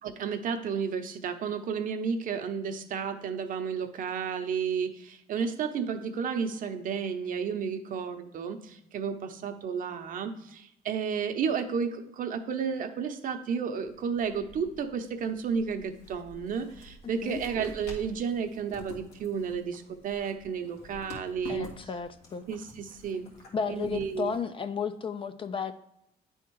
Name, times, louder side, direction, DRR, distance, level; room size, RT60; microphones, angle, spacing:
voice 1, 0.0-21.7 22.5-23.3 23.7-24.4, right 6 dB, 55° right, 6 dB, 0.8 m, -32 dB
sound 1, 13.8-24.4, left 2 dB, 80° left, 1.8 m, -50 dB
voice 2, 21.5-22.4 23.5-25.7, left 6 dB, 30° left, 10 dB, 0.5 m, -33 dB
9.2 x 3.6 x 4.6 m, 0.81 s
cardioid pair, 110°, 17 cm